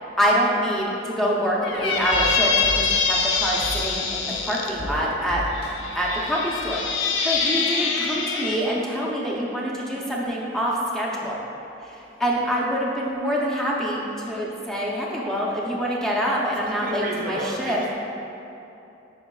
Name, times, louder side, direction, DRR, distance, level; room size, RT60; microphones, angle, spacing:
voice 1, 0.2-5.4 5.9-11.4 12.2-17.8, equal, 5° left, -4 dB, 0.7 m, -25 dB
Squeak, 1.6-4.7 5.5-8.6, left 5 dB, 75° left, 0.6 m, -25 dB
sound 1, 1.7-6.9 7.3-7.4, equal, 60° left, 1.0 m, -37 dB
voice 2, 4.8-5.1 16.6-17.9, right 1 dB, 50° right, -1 dB, 0.6 m, -32 dB
9.0 x 5.0 x 2.3 m, 2.8 s
head